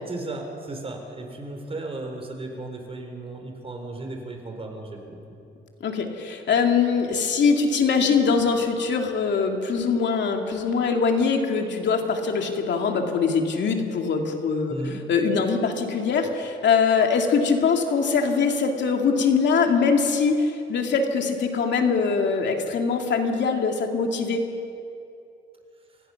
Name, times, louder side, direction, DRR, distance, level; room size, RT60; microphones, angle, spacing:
voice 1, 0.1-5.4 14.7-15.0, right 2 dB, 30° right, 3 dB, 4.3 m, -35 dB
voice 2, 5.8-14.8 15.1-24.5, left 5 dB, 65° left, 3 dB, 2.7 m, -22 dB
28.5 x 16.5 x 6.0 m, 2.6 s
cardioid pair, 90°, 20 cm